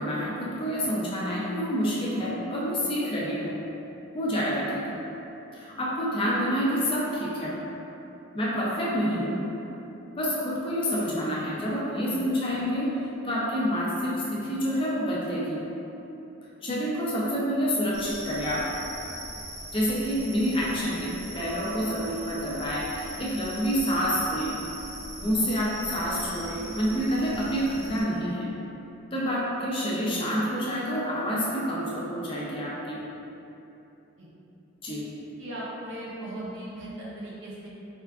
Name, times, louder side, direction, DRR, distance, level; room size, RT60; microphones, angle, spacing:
voice 1, 0.0-3.6 4.1-4.9 5.5-7.6 8.3-9.5 10.2-15.7 16.6-18.8 19.7-24.6 25.2-28.5 29.1-33.0 34.8-35.2, equal, 25° left, -6 dB, 0.5 m, -28 dB
sound 1, 17.9-28.0, right 1 dB, 75° right, 1.0 m, -40 dB
voice 2, 35.4-37.7, right 1 dB, 55° right, -6 dB, 0.7 m, -38 dB
4.3 x 2.3 x 2.3 m, 3.0 s
head